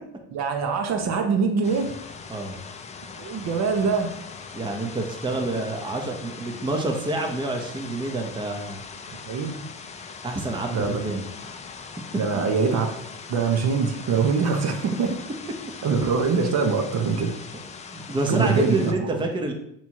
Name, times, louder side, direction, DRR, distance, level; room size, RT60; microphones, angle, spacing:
voice 1, 0.3-1.9 3.2-4.1 9.3-9.6 10.7-11.2 12.1-12.9 13.3-15.1 15.8-17.3 18.3-19.2, right 5 dB, 50° right, 4 dB, 0.8 m, -23 dB
sound 1, 1.6-18.9, left 5 dB, 20° left, 0.4 m, -40 dB
voice 2, 2.3-2.6 4.5-8.8 10.2-11.3 17.9-19.5, right 2 dB, 15° right, 2 dB, 0.7 m, -28 dB
3.5 x 3.0 x 4.3 m, 0.76 s
hypercardioid pair, 75°, 35 cm